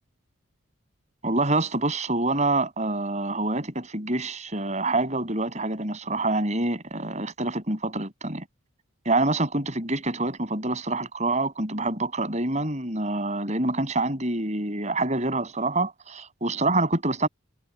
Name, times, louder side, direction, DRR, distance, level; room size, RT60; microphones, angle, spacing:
voice 1, 1.2-8.4 9.1-17.3, right 2 dB, 35° right, 7.2 m, -26 dB
head